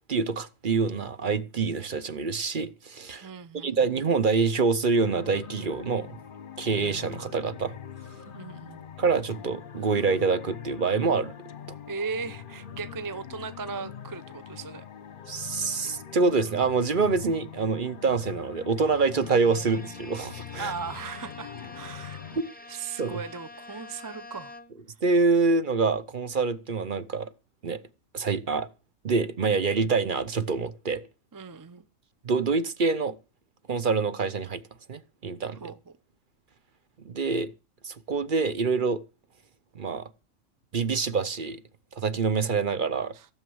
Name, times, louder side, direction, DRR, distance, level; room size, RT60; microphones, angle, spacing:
voice 1, 0.1-3.3 3.5-6.1 6.6-7.7 9.0-11.3 15.3-20.7 23.0-23.2 25.0-27.3 27.6-27.8 28.1-28.7 29.0-31.0 32.2-33.2 33.7-34.6 34.9-35.6 37.0-37.5 37.8-39.0 39.7-40.1 40.7-41.6 42.0-43.1, right 4 dB, 45° right, 1.0 m, -26 dB
voice 2, 3.1-3.8 8.3-8.8 11.9-14.9 20.6-22.2 22.7-24.5 31.3-31.8 35.5-35.8 43.1-43.3, right 5 dB, 25° right, 0.5 m, -37 dB
sound 1, 4.9-22.4, left 8 dB, 45° left, 1.0 m, -43 dB
Bowed string instrument, 18.9-25.0, left 2 dB, 5° left, 1.0 m, -47 dB
16.0 x 7.3 x 7.8 m
omnidirectional pair, 1.4 m